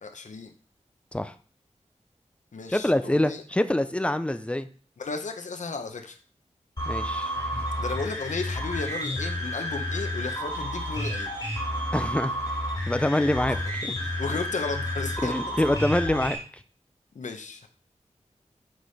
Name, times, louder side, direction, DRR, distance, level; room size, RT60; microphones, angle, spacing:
voice 1, 0.0-0.5 2.5-3.4 5.0-6.2 7.8-11.3 13.5-13.6 13.9-15.6 17.1-17.7, left 4 dB, 85° left, 7 dB, 0.8 m, -34 dB
voice 2, 2.7-4.7 6.9-7.7 11.9-12.3 12.9-13.9 15.2-16.6, left 1 dB, 10° left, 11 dB, 0.5 m, -26 dB
sound 1, 6.8-16.4, left 1 dB, 30° left, 3.2 m, -31 dB
6.1 x 4.9 x 4.1 m, 0.42 s
wide cardioid pair, 85°, 12 cm